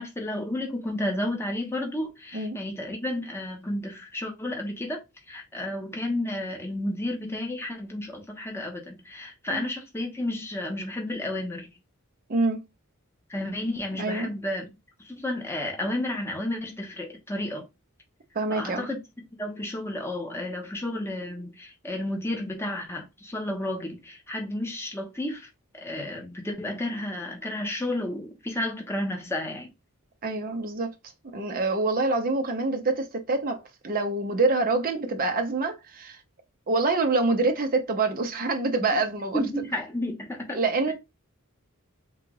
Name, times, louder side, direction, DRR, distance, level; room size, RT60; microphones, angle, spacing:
voice 1, 0.0-5.0 5.3-11.7 13.3-14.7 15.0-17.6 18.5-19.0 19.3-25.5 25.7-29.7 38.9-39.0 39.3-40.6 40.9-41.0, left 1 dB, 10° left, 1.0 m, -32 dB
voice 2, 12.3-12.6 14.0-14.3 18.3-18.9 30.2-30.9 31.3-36.2 36.7-39.4 40.5-40.9, right 3 dB, 40° right, 0.7 m, -26 dB
3.8 x 2.4 x 4.6 m
head